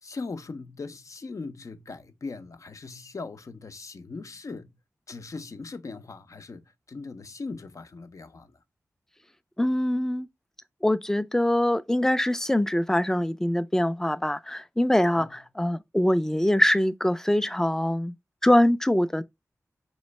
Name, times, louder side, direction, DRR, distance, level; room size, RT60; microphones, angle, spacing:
voice 1, 0.0-4.7 5.1-8.5 15.1-15.3, left 3 dB, 60° left, 0.6 m, -39 dB
voice 2, 9.6-10.3 10.8-18.1 18.4-19.2, left 1 dB, 5° left, 0.4 m, -23 dB
4.0 x 3.1 x 3.1 m
cardioid pair, 45°, 6 cm